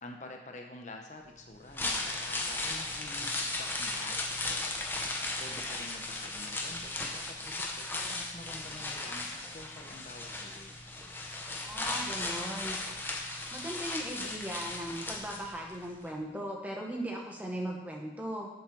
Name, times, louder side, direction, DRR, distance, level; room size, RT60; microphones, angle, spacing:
voice 1, 0.0-4.2 5.4-10.8, left 2 dB, 40° left, 3 dB, 0.8 m, -48 dB
sound 1, 1.5-15.8 16.1-16.2, left 2 dB, 10° left, 1.0 m, -36 dB
voice 2, 11.6-12.8 13.5-18.5, right 1 dB, 10° right, -1 dB, 1.4 m, -38 dB
8.2 x 7.2 x 6.1 m, 1.0 s
head